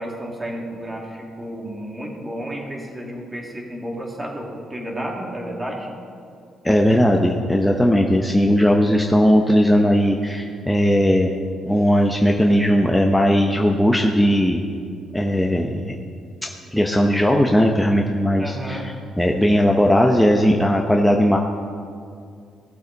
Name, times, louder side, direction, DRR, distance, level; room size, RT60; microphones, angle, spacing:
voice 1, 0.0-5.9 7.4-7.6 18.3-18.8, right 1 dB, 20° right, -1 dB, 2.6 m, -32 dB
voice 2, 6.6-11.3 11.7-14.6 15.1-15.9 16.4-21.4, equal, 5° left, 0 dB, 0.9 m, -18 dB
16.5 x 7.6 x 4.1 m, 2.3 s
cardioid pair, 70°, 0 cm